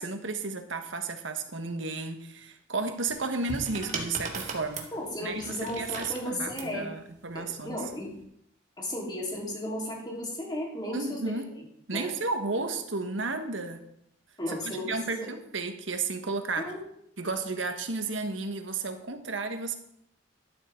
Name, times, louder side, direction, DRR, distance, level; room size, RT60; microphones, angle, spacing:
voice 1, 0.0-4.9 5.2-7.8 10.9-11.5 11.9-13.8 14.6-16.7 17.2-19.8, right 3 dB, 75° right, 7 dB, 1.5 m, -33 dB
sound 1, 3.1-6.8 7.8-8.2, right 3 dB, 40° right, 2.0 m, -38 dB
voice 2, 4.9-6.9 7.3-8.1 8.8-11.4 11.9-12.1 14.4-15.3 16.6-16.8, left 1 dB, 25° left, -3 dB, 3.9 m, -34 dB
13.0 x 11.5 x 3.9 m, 0.75 s
head